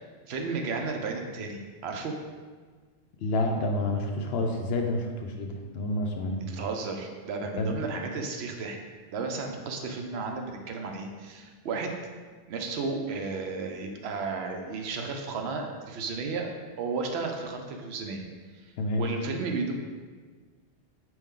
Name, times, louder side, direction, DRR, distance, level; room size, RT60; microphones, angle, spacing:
voice 1, 0.3-2.2 6.5-8.8 9.1-11.9 12.5-18.2 18.5-18.6 19.0-19.7, right 4 dB, 75° right, 3 dB, 0.8 m, -33 dB
voice 2, 3.2-6.5 7.5-7.7 18.8-19.0, left 1 dB, 70° left, 3 dB, 0.8 m, -29 dB
4.6 x 3.1 x 3.6 m, 1.5 s
omnidirectional pair, 1.1 m